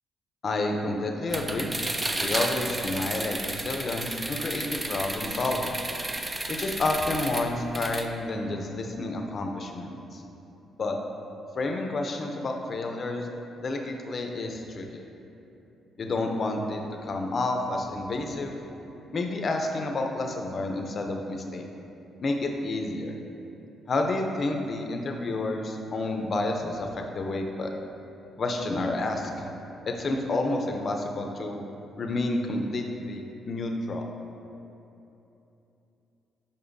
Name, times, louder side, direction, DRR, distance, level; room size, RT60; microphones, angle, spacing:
voice 1, 0.4-1.8 2.2-5.8 6.5-10.2 10.8-11.0 11.5-13.3 13.6-15.0 16.0-18.6 19.1-21.7 22.2-23.1 23.9-27.7 28.4-29.3 29.9-31.6 32.0-34.1, left 2 dB, 45° left, 3 dB, 0.6 m, -30 dB
sound 1, 1.3-8.1, right 2 dB, 20° right, 0.4 m, -32 dB
6.8 x 5.2 x 2.6 m, 3.0 s
cardioid pair, 90°, 0 cm